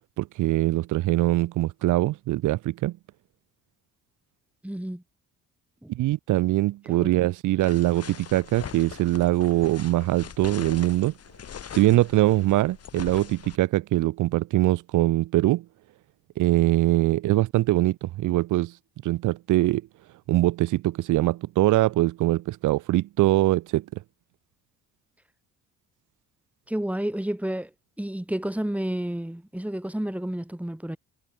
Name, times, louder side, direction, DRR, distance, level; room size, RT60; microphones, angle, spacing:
voice 1, 0.2-2.9 5.9-11.1 11.7-15.6 16.4-18.7 19.0-19.8 20.3-23.8, right 16 dB, 80° right, 0.9 m, -22 dB
voice 2, 4.6-5.0 5.8-5.9 6.8-7.1 26.7-27.7 28.0-31.0, right 1 dB, 5° right, 5.5 m, -30 dB
sound 1, 7.6-13.6, left 8 dB, 55° left, 4.5 m, -41 dB
cardioid pair, 90°, 30 cm